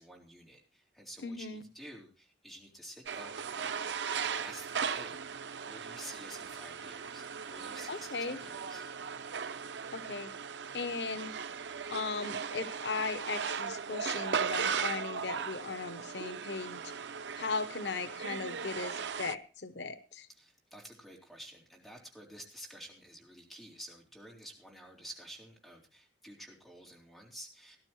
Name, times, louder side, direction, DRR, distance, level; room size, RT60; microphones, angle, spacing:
voice 1, 0.0-3.9 4.2-5.2 5.7-8.8 20.3-27.8, right 1 dB, ahead, -2 dB, 4.0 m, -50 dB
voice 2, 1.2-1.6 7.9-8.4 9.9-10.3 10.7-11.4 11.9-16.8 17.4-20.3, left 4 dB, 85° left, 12 dB, 1.0 m, -37 dB
sound 1, 3.1-19.3, right 6 dB, 90° right, 0.6 m, -37 dB
18.5 x 12.0 x 3.1 m, 0.34 s
head